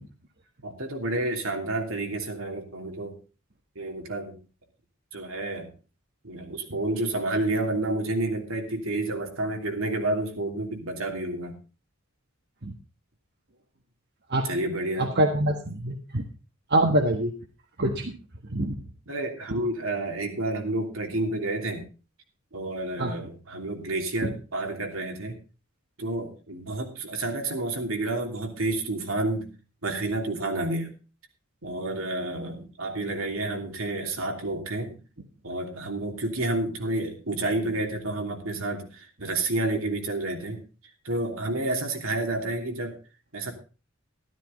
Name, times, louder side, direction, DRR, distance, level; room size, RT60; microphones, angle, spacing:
voice 1, 0.6-3.2 3.7-4.4 5.1-5.7 6.2-11.5 14.4-15.1 19.1-21.8 22.5-25.4 26.0-29.5 29.8-30.9 31.6-35.0 35.4-40.6 41.0-43.0 43.3-43.5, right 2 dB, 75° right, 3 dB, 3.1 m, -30 dB
voice 2, 15.0-16.3 16.7-17.3 17.8-18.1 18.5-18.7 23.0-23.1, right 1 dB, 50° right, 4 dB, 1.5 m, -24 dB
13.0 x 13.0 x 3.9 m, 0.34 s
head